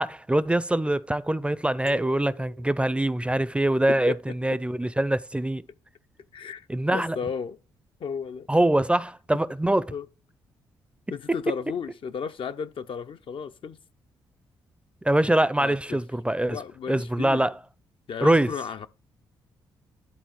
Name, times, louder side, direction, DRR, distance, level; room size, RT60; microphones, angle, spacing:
voice 1, 0.0-5.6 6.7-7.2 8.5-9.9 11.3-11.4 15.0-16.6 16.9-17.5 18.2-18.5, right 1 dB, 10° right, 0.5 m, -24 dB
sound 1, 1.9-3.7, right 4 dB, 75° right, 0.9 m, -48 dB
voice 2, 3.9-4.4 6.3-6.7 6.9-7.6 8.0-8.5 9.9-10.1 11.1-13.8 15.6-16.0 16.5-17.4 18.1-18.9, left 6 dB, 55° left, 0.6 m, -34 dB
11.5 x 4.1 x 4.5 m
hypercardioid pair, 45°, 11 cm